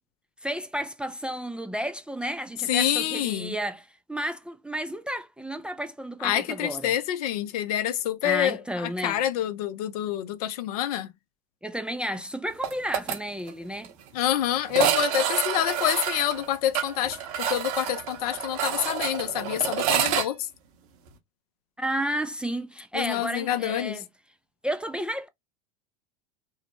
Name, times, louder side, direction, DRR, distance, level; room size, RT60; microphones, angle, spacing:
voice 1, 0.4-6.9 8.2-9.2 11.6-13.9 21.8-24.1 24.6-25.3, right 1 dB, 5° right, 0.3 m, -32 dB
voice 2, 2.7-3.5 6.2-11.1 14.1-20.5 22.9-24.0, left 11 dB, 70° left, 0.5 m, -27 dB
sound 1, 12.6-13.2 13.5-13.6 13.8-13.9 14.7-20.3, right 10 dB, 60° right, 0.9 m, -28 dB
2.5 x 2.0 x 3.0 m
hypercardioid pair, 90°, 20 cm